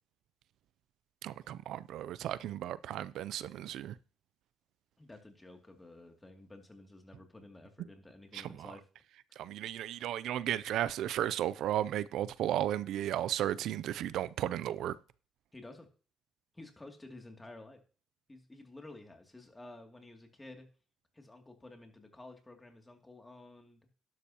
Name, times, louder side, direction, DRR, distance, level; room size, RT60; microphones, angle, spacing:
voice 1, 1.2-4.0 8.3-8.5 9.4-14.9, right 12 dB, 80° right, 0.5 m, -34 dB
voice 2, 5.0-8.8 9.3-9.5 15.5-15.9 16.5-17.8 18.3-20.7 21.1-23.9, left 2 dB, 15° left, 2.6 m, -52 dB
11.5 x 11.5 x 2.9 m
cardioid pair, 90°, 0 cm